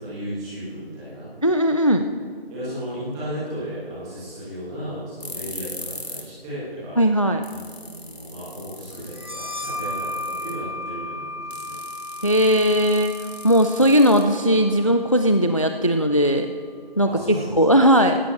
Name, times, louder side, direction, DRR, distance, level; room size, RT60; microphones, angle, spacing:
voice 1, 0.0-1.3 2.5-7.0 7.4-11.8 17.0-17.6, equal, 5° right, -10 dB, 1.6 m, -34 dB
voice 2, 1.4-2.0 7.0-7.4 12.2-13.2 13.4-16.5 17.0-18.2, equal, 35° left, 7 dB, 0.4 m, -18 dB
sound 1, 5.2-6.3 6.6-6.7 7.2-7.3 7.4-10.7 11.5-14.6, left 1 dB, 90° left, 3.3 m, -39 dB
sound 2, 9.1-16.4, left 1 dB, 25° right, 0.7 m, -35 dB
20.0 x 16.5 x 3.1 m, 2.1 s
figure-of-eight pair, 165°, 31 cm